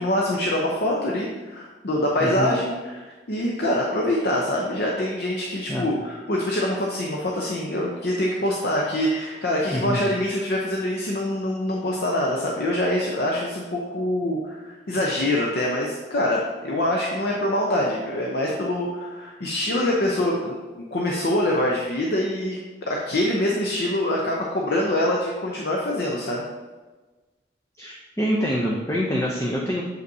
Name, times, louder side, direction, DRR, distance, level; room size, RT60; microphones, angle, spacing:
voice 1, 0.0-22.6 22.9-26.4, left 1 dB, 60° left, -2 dB, 0.7 m, -25 dB
voice 2, 2.2-2.5 5.7-5.9 9.7-10.0 27.8-29.8, equal, 15° left, -3 dB, 0.6 m, -25 dB
7.6 x 5.3 x 2.7 m, 1.3 s
head